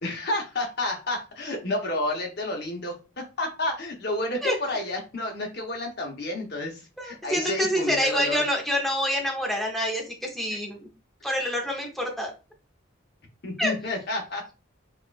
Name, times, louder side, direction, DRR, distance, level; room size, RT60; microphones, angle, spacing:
voice 1, 0.0-8.4 13.4-14.4, left 2 dB, 50° left, 2 dB, 0.9 m, -30 dB
voice 2, 7.0-10.9 11.2-12.3 13.6-13.7, equal, ahead, 0 dB, 0.7 m, -27 dB
4.4 x 2.4 x 2.3 m, 0.31 s
head